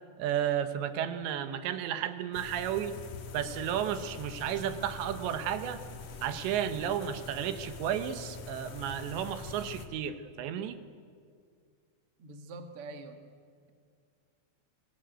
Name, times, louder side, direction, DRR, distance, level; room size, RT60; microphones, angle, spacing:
voice 1, 0.2-2.9 3.3-5.8 6.2-10.8, right 9 dB, 75° right, 10 dB, 3.2 m, -33 dB
sound 1, 2.3-9.9, left 4 dB, 55° left, 2.2 m, -44 dB
voice 2, 12.2-13.2, right 3 dB, 60° right, 5 dB, 1.5 m, -44 dB
23.0 x 20.5 x 9.1 m, 2.2 s
omnidirectional pair, 5.4 m